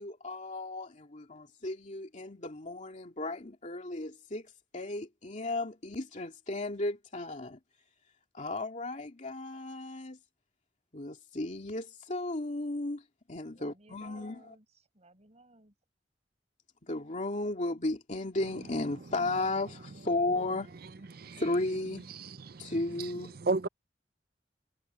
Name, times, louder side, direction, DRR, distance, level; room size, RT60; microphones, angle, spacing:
voice 1, 0.0-4.5 4.7-7.6 8.3-10.2 10.9-13.0 13.3-14.4 16.8-20.7 21.4-22.1 22.6-23.3, left 2 dB, 45° left, 2.4 m, -34 dB
voice 2, 13.5-15.7, right 2 dB, 40° right, 5.9 m, -58 dB
voice 3, 22.2-22.7 23.4-23.7, right 3 dB, 60° right, 0.6 m, -32 dB
head